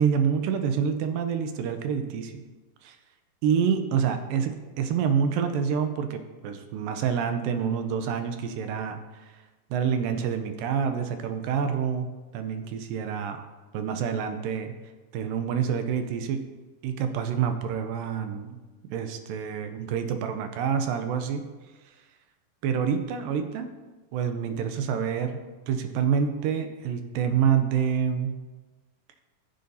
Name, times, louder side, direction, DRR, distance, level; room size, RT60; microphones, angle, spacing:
voice 1, 0.0-2.4 2.8-3.0 3.4-9.4 9.7-12.1 12.3-13.5 13.7-14.7 15.1-16.4 16.8-18.6 18.8-21.5 22.6-23.7 24.1-25.4 25.7-28.4, right 7 dB, 80° right, 7 dB, 2.3 m, -27 dB
15.0 x 7.7 x 2.8 m, 1.2 s
omnidirectional pair, 4.1 m